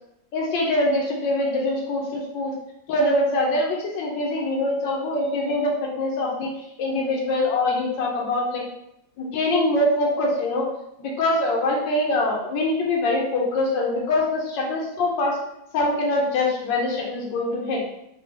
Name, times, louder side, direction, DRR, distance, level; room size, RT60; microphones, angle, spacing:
voice 1, 0.3-2.5 2.9-6.5 6.8-8.6 9.2-10.7 11.0-15.4 15.7-17.8, left 2 dB, 90° left, -2 dB, 1.4 m, -23 dB
4.0 x 2.2 x 3.2 m, 0.80 s
omnidirectional pair, 1.9 m